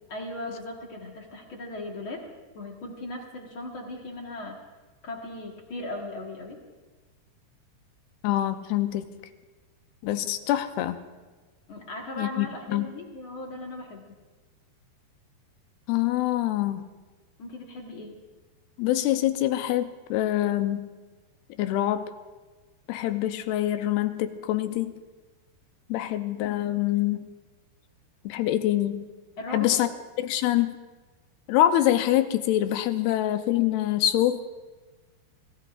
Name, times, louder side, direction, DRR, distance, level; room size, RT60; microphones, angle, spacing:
voice 1, 0.1-2.2 2.5-4.6 5.0-6.6 11.7-14.0 17.4-18.1 29.4-30.0, left 1 dB, 60° left, 0 dB, 1.3 m, -38 dB
voice 2, 8.2-9.0 10.0-11.0 12.2-12.9 15.9-16.9 18.8-20.9 21.6-22.1 22.9-24.9 25.9-27.3 28.3-29.1 29.5-29.9 30.2-30.8 31.5-34.4, left 13 dB, 80° left, 9 dB, 2.5 m, -25 dB
27.0 x 17.0 x 2.5 m, 1.3 s
omnidirectional pair, 4.8 m